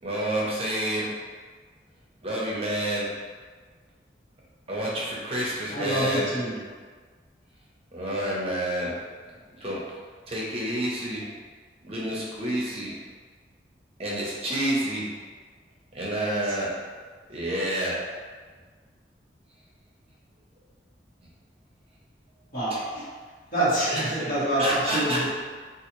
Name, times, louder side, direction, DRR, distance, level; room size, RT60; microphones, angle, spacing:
voice 1, 0.0-1.1 2.2-3.1 4.7-6.3 7.9-8.9 9.6-9.8 10.3-11.2 11.8-12.9 14.0-15.1 15.9-16.7 17.3-18.0 23.9-25.3, right 1 dB, 35° right, -5 dB, 0.7 m, -28 dB
voice 2, 5.7-6.6 22.5-23.0 23.5-25.3, right 1 dB, 50° left, -12 dB, 1.4 m, -26 dB
3.9 x 2.5 x 3.0 m, 1.5 s
head